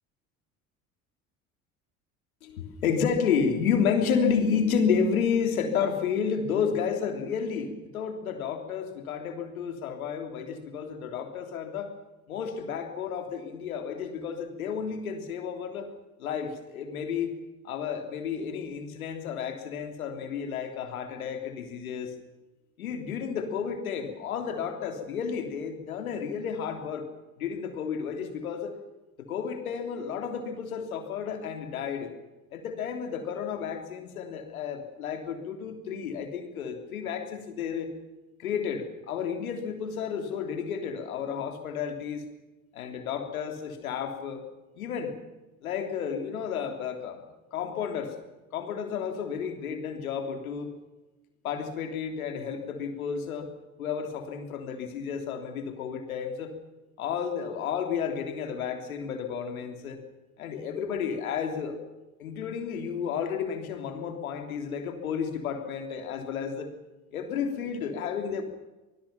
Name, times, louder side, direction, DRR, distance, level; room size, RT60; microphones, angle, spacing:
voice 1, 2.4-11.9 12.3-15.9 16.2-17.3 17.6-22.1 22.8-27.1 27.4-28.7 29.2-32.1 32.5-37.9 38.4-42.2 42.7-44.4 44.7-45.2 45.6-47.2 47.5-48.2 48.5-50.7 51.4-56.5 57.0-60.0 60.4-61.8 62.2-66.7 67.1-68.4, left 6 dB, 80° left, 5 dB, 3.4 m, -31 dB
25.5 x 19.5 x 5.9 m, 1.1 s
hypercardioid pair, 65°, 42 cm